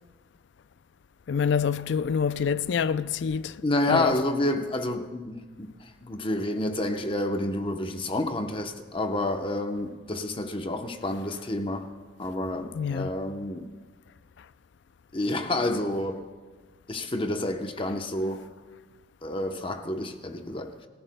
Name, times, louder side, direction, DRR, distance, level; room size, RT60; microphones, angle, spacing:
voice 1, 1.3-4.2 12.7-13.1, left 6 dB, 60° left, 0.4 m, -27 dB
voice 2, 3.6-11.9 12.2-13.7 15.1-16.2 16.9-18.4 19.2-20.7, left 1 dB, 25° left, 0.8 m, -29 dB
29.5 x 14.0 x 2.2 m
head